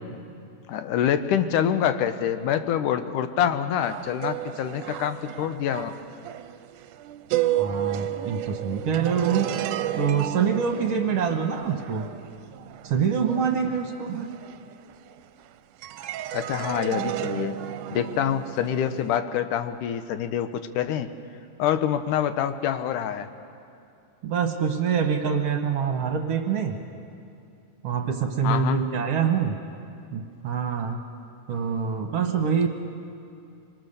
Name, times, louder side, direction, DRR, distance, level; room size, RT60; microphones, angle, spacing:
voice 1, 0.7-5.9 16.3-17.6 17.9-21.1 21.6-23.3 28.4-28.8, left 9 dB, 80° left, 10 dB, 2.3 m, -26 dB
sound 1, 3.8-15.4 15.8-19.2, right 13 dB, 75° right, 2.1 m, -32 dB
voice 2, 7.5-9.5 10.0-12.1 12.8-14.3 24.2-26.8 27.8-29.6 30.1-31.0 31.5-32.7, right 6 dB, 60° right, 4 dB, 1.9 m, -25 dB
25.0 x 24.5 x 6.7 m, 2.6 s
omnidirectional pair, 3.7 m